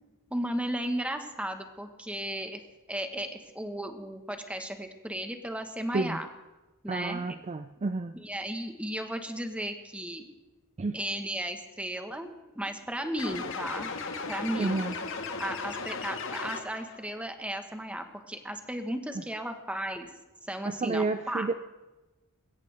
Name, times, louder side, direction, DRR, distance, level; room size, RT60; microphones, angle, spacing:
voice 1, 0.3-2.6 2.9-6.3 6.8-7.3 8.1-10.3 10.9-13.9 14.3-14.8 15.4-20.1 20.4-21.5, right 1 dB, 5° right, 6 dB, 1.3 m, -35 dB
voice 2, 6.9-8.1 10.8-11.0 14.6-14.9 20.7-21.5, right 3 dB, 30° right, 10 dB, 0.4 m, -30 dB
sound 1, 13.2-17.0, left 4 dB, 60° left, 1.7 m, -36 dB
21.5 x 17.0 x 3.4 m, 1.1 s
head